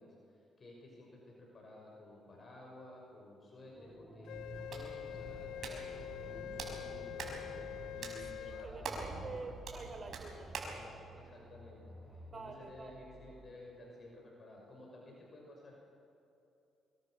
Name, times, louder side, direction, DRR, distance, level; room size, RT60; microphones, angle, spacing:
voice 1, 0.0-7.7 7.9-8.9 11.0-15.8, left 1 dB, 40° left, -1 dB, 6.2 m, -54 dB
voice 2, 3.6-3.9 8.4-10.8 12.3-13.1, right 3 dB, 40° right, 6 dB, 3.7 m, -48 dB
sound 1, 3.7-13.6, right 1 dB, 10° right, 3.7 m, -53 dB
Wind instrument woodwind instrument, 4.3-8.7, left 12 dB, 80° left, 0.6 m, -45 dB
Hands, 4.3-10.8, right 4 dB, 60° right, 5.4 m, -46 dB
24.0 x 22.5 x 6.6 m, 2.8 s
cardioid pair, 90°, 0 cm